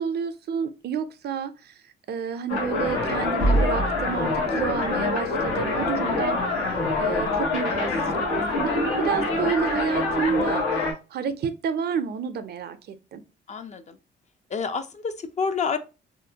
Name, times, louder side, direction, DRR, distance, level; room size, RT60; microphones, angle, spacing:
voice 1, 0.0-1.8 2.1-6.4 7.0-13.2, right 6 dB, 55° right, 0.4 m, -29 dB
sound 1, 2.5-10.9, left 2 dB, 90° left, 1.0 m, -25 dB
voice 2, 13.5-14.0 14.5-15.8, left 5 dB, 35° left, 0.4 m, -28 dB
2.6 x 2.5 x 2.7 m
cardioid pair, 90°, 20 cm